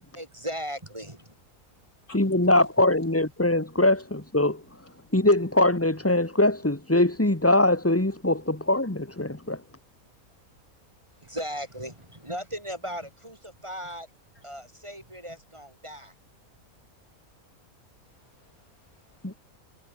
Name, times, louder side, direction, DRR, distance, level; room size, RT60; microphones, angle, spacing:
voice 1, 0.1-1.3 11.2-14.1 14.4-16.1, equal, 20° right, 3.0 m, -37 dB
voice 2, 2.1-4.6 5.1-9.6 19.2-19.3, left 1 dB, 10° left, 1.8 m, -22 dB
voice 3, 18.0-19.4, left 2 dB, 85° left, 6.9 m, -57 dB
omnidirectional pair, 1.5 m